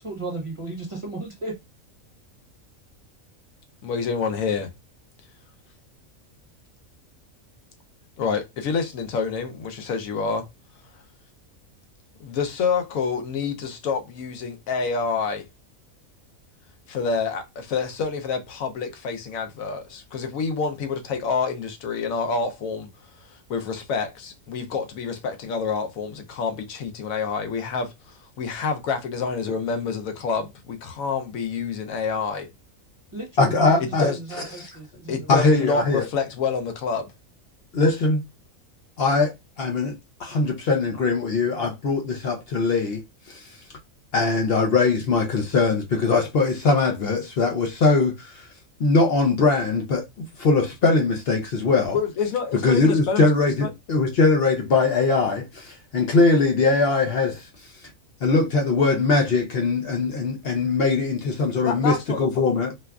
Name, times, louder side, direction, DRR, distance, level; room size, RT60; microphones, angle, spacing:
voice 1, 0.0-1.6 33.1-35.9, right 2 dB, 30° right, 0.7 m, -35 dB
voice 2, 3.8-4.7 8.2-10.5 12.2-15.5 16.9-22.9 23.3-32.5 33.8-34.2 35.1-37.1 51.9-53.3 53.6-53.7 61.4-62.3, left 5 dB, 80° left, 1.1 m, -27 dB
voice 3, 33.4-34.1 35.3-36.1 37.7-38.2 39.0-43.0 43.3-43.4 44.1-48.5 48.8-52.0 52.6-57.4 58.2-62.7, left 3 dB, 60° left, 0.7 m, -21 dB
4.4 x 2.3 x 2.3 m
omnidirectional pair, 1.4 m